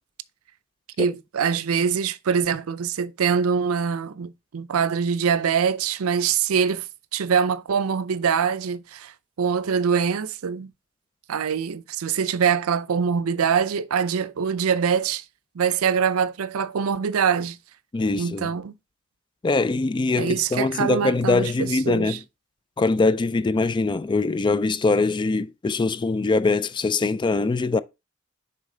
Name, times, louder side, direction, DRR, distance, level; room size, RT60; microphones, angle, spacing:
voice 1, 1.0-6.8 7.1-9.1 9.4-10.7 11.3-15.2 15.6-17.6 18.2-18.8 20.2-22.2, right 6 dB, 85° right, 0.5 m, -24 dB
voice 2, 17.9-18.5 19.4-22.2 22.8-27.8, left 3 dB, 20° left, 0.3 m, -22 dB
6.4 x 4.4 x 3.8 m
head